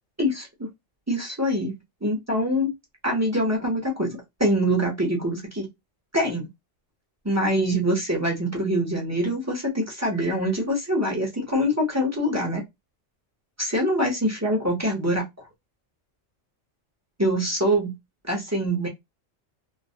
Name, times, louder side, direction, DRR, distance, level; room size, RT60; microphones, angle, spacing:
voice 1, 0.2-0.7 1.1-1.7 2.0-2.7 3.0-5.7 6.1-6.5 7.2-12.6 13.6-15.2 17.2-17.9 18.3-18.9, equal, 20° right, 0.4 m, -24 dB
2.3 x 2.0 x 2.6 m
omnidirectional pair, 1.3 m